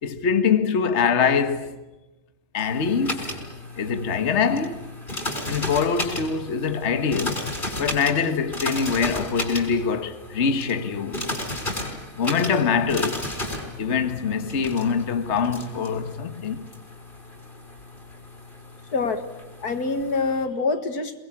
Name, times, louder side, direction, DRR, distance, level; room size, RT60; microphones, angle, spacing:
voice 1, 0.0-1.7 2.5-3.3 3.8-4.9 5.4-7.5 7.8-11.2 12.2-13.2 13.8-16.6, left 6 dB, 50° left, 1.6 m, -24 dB
sound 1, 2.6-20.4, left 1 dB, 30° left, 4.9 m, -34 dB
voice 2, 18.9-19.3 19.6-21.2, left 3 dB, 80° left, 2.3 m, -25 dB
23.5 x 20.5 x 9.7 m
omnidirectional pair, 1.6 m